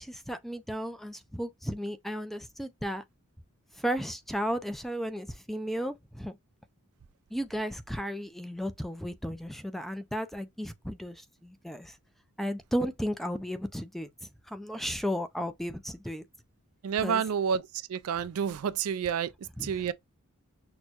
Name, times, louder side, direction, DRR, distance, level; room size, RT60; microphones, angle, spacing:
voice 1, 0.0-3.0 3.7-6.4 7.3-12.0 12.4-16.2 17.0-17.2 19.6-19.7, equal, ahead, 0.4 m, -34 dB
voice 2, 16.8-19.3 19.6-19.9, right 7 dB, 80° right, 0.4 m, -29 dB
6.2 x 2.2 x 2.8 m
head